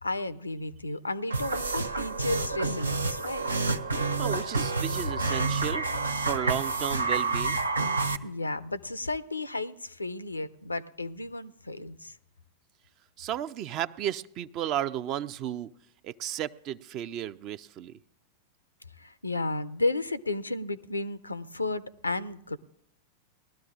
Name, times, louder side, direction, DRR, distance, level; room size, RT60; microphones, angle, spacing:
voice 1, 0.0-3.4 8.2-12.2 19.0-22.6, left 2 dB, 80° left, 17 dB, 0.5 m, -33 dB
sound 1, 1.3-8.2, right 3 dB, 80° right, 0.6 m, -29 dB
voice 2, 4.2-5.8 6.2-7.6 13.2-15.7 16.0-18.0, right 11 dB, 40° right, 15 dB, 0.4 m, -33 dB
20.0 x 12.5 x 2.5 m, 0.79 s
figure-of-eight pair, 90°, 0 cm